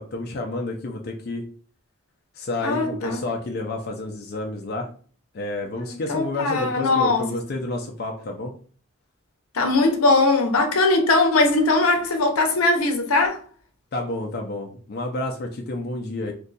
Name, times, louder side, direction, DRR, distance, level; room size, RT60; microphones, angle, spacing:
voice 1, 0.0-1.4 2.3-4.9 5.3-8.5 13.9-16.3, left 2 dB, 45° left, 0.4 m, -30 dB
voice 2, 2.6-3.2 5.7-7.2 9.5-13.4, left 2 dB, 80° left, 0.7 m, -20 dB
2.6 x 2.3 x 3.9 m
head